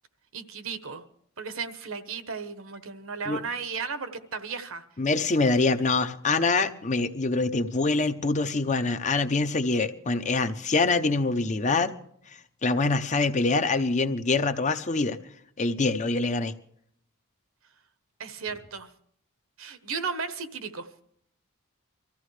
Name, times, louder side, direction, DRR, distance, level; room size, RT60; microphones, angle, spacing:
voice 1, 0.3-1.0 1.4-4.8 18.2-18.9 19.6-20.9, right 5 dB, 65° right, 1.2 m, -35 dB
voice 2, 5.0-11.9 12.6-15.2 15.6-16.5, left 3 dB, 35° left, 0.7 m, -25 dB
23.5 x 14.5 x 3.3 m
head